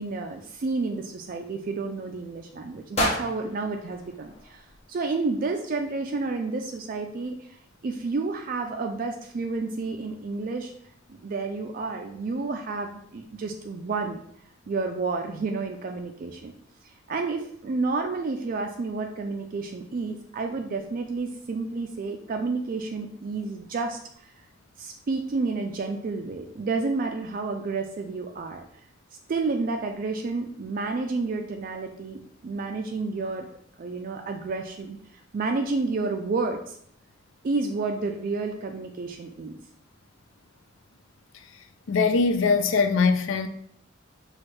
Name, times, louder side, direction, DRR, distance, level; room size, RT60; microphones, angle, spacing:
voice 1, 0.0-4.6 4.9-10.7 11.1-14.2 14.7-16.5 17.1-24.3 24.8-28.6 29.3-33.5 33.8-35.0 35.3-36.8 37.4-39.6, right 3 dB, 45° right, 0.3 m, -30 dB
sound 1, 2.9-5.1, left 2 dB, 30° left, 0.7 m, -32 dB
voice 2, 41.9-43.5, left 4 dB, 70° left, 0.4 m, -21 dB
5.9 x 2.3 x 3.2 m
head